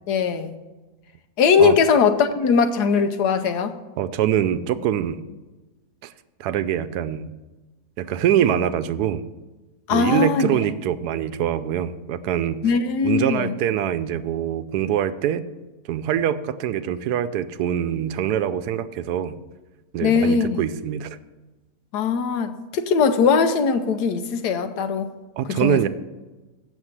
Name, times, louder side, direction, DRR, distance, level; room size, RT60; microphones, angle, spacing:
voice 1, 0.1-0.6 1.4-3.7 9.9-10.6 12.6-13.5 20.0-20.6 21.9-25.1 25.5-25.8, left 5 dB, 85° left, 9 dB, 1.4 m, -20 dB
voice 2, 4.0-5.2 6.0-6.1 6.4-7.3 8.0-9.2 9.9-12.6 13.0-15.4 15.9-19.4 19.9-21.2 25.4-25.9, right 10 dB, 80° right, 13 dB, 1.1 m, -24 dB
8.1 x 6.8 x 7.3 m, 1.2 s
omnidirectional pair, 1.7 m